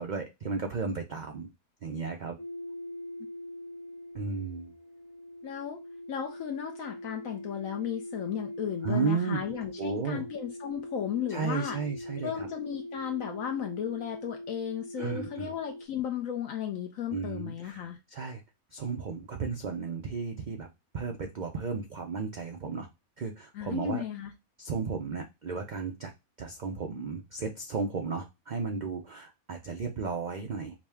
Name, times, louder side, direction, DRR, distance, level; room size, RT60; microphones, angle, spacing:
voice 1, 0.0-1.5 1.8-2.4 4.1-4.7 8.8-9.4 9.8-10.3 11.3-12.5 15.0-15.5 17.1-17.8 18.1-18.4 18.7-20.7 20.9-22.9 23.2-24.0 24.6-26.1 26.4-30.7, right 5 dB, 70° right, 0.4 m, -34 dB
sound 1, 2.4-15.9, left 1 dB, 45° left, 0.3 m, -42 dB
voice 2, 5.4-5.8 6.1-11.8 12.2-18.0 23.5-24.3, left 9 dB, 75° left, 1.0 m, -35 dB
4.9 x 2.2 x 3.4 m
omnidirectional pair, 1.5 m